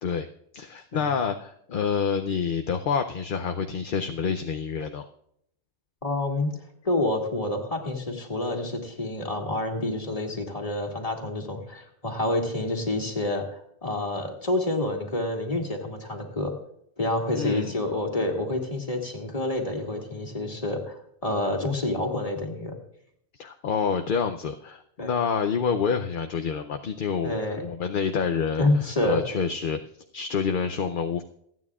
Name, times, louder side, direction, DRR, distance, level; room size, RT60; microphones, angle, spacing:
voice 1, 0.5-5.1 17.3-17.7 23.4-28.7 29.0-29.8 30.1-31.2, left 6 dB, 55° left, 6 dB, 0.8 m, -27 dB
voice 2, 6.0-6.5 6.8-16.5 17.0-22.8 25.0-25.1 27.2-27.6 28.6-29.2, left 2 dB, 30° left, 1 dB, 2.3 m, -28 dB
28.0 x 9.4 x 2.4 m, 0.72 s
omnidirectional pair, 1.2 m